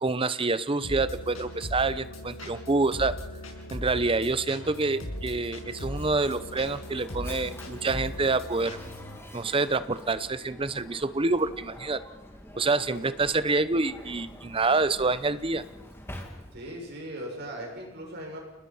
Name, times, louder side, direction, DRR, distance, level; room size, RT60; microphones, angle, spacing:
voice 1, 0.0-3.1 3.7-8.8 9.3-12.0 12.5-15.6, right 3 dB, 25° right, 14 dB, 0.8 m, -27 dB
sound 1, 0.8-9.2, equal, 85° left, 6.9 m, -39 dB
Mechanisms, 5.6-16.8, left 1 dB, 10° left, 2.7 m, -46 dB
voice 2, 16.5-18.4, right 1 dB, 55° right, 0 dB, 6.9 m, -38 dB
29.5 x 19.5 x 5.7 m, 1.1 s
head